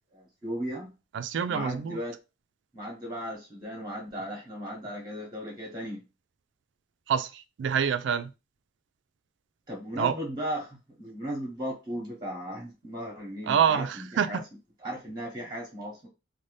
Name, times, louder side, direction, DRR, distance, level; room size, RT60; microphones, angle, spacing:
voice 1, 0.1-0.9 1.5-2.2 2.7-6.0 9.7-14.4 14.8-16.1, equal, 20° right, 0.8 m, -36 dB
voice 2, 1.1-2.0 7.1-8.3 10.0-10.1 13.5-14.4, right 7 dB, 65° right, 0.3 m, -26 dB
2.6 x 2.1 x 3.2 m
head